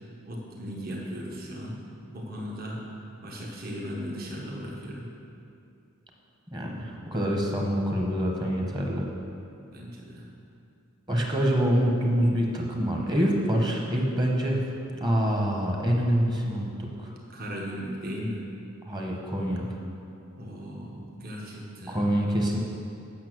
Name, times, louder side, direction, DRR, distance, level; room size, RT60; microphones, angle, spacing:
voice 1, 0.2-1.8 2.1-2.8 3.2-5.1 9.6-10.3 17.3-18.4 20.3-22.0, equal, 45° right, -2 dB, 1.3 m, -37 dB
voice 2, 6.5-9.0 11.1-14.6 14.9-17.1 18.9-19.7 21.9-22.6, equal, 20° right, 0 dB, 1.2 m, -26 dB
8.6 x 6.6 x 6.2 m, 2.6 s
head